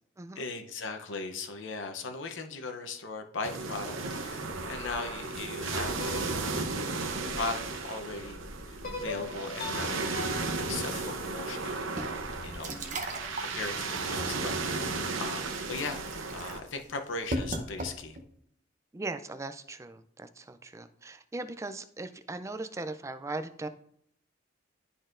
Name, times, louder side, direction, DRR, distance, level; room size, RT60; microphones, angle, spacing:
voice 1, 0.4-6.5 7.3-8.4 8.7-10.1 10.7-11.8 12.4-12.7 13.5-16.0 16.3-18.2, left 3 dB, 70° left, 0.7 m, -38 dB
sound 1, 3.4-16.6, right 3 dB, 80° right, 0.8 m, -34 dB
sound 2, 6.0-8.1 8.8-12.0, left 3 dB, 45° left, 1.8 m, -42 dB
sound 3, 11.9-18.3, right 1 dB, 40° right, 0.7 m, -39 dB
voice 2, 12.7-13.0 18.9-23.7, right 2 dB, 15° right, 0.3 m, -39 dB
12.0 x 4.1 x 2.5 m
head